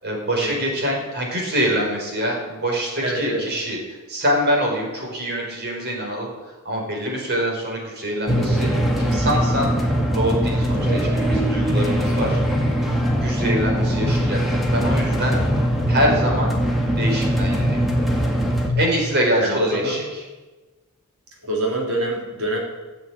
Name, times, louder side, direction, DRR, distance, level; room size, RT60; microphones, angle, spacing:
voice 1, 0.0-3.8 4.1-6.3 6.6-8.7 9.0-9.7 10.1-12.4 13.2-15.4 15.9-16.5 17.0-17.8 18.8-20.0, equal, 50° right, 0 dB, 4.7 m, -24 dB
voice 2, 3.0-3.5 10.8-11.1 15.2-15.6 19.4-20.0 21.4-22.6, right 1 dB, 75° right, -1 dB, 3.9 m, -26 dB
sound 1, 8.3-18.7, equal, ahead, 2.0 m, -21 dB
15.0 x 7.7 x 8.6 m, 1.2 s
head